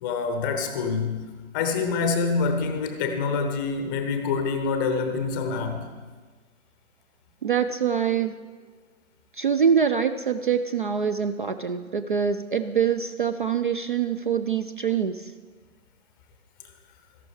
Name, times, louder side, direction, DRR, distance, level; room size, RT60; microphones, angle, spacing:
voice 1, 0.0-5.8, left 4 dB, 15° left, 7 dB, 0.7 m, -26 dB
voice 2, 7.4-8.4 9.3-15.3, right 7 dB, 40° right, 10 dB, 0.4 m, -24 dB
13.5 x 11.5 x 4.8 m, 1.4 s
figure-of-eight pair, 130°, 41 cm